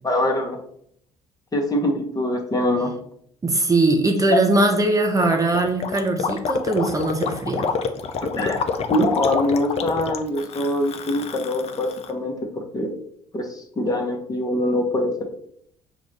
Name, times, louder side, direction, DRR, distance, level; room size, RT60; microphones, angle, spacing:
voice 1, 0.0-0.6 1.5-2.9 8.3-8.6 8.9-12.9 13.3-15.2, left 1 dB, 25° left, 2 dB, 1.1 m, -23 dB
voice 2, 3.4-7.7, right 2 dB, 25° right, 4 dB, 0.7 m, -20 dB
Gurgling, 5.2-12.1, left 5 dB, 45° left, 0.5 m, -28 dB
5.5 x 2.4 x 3.3 m, 0.67 s
hypercardioid pair, 60°, 14 cm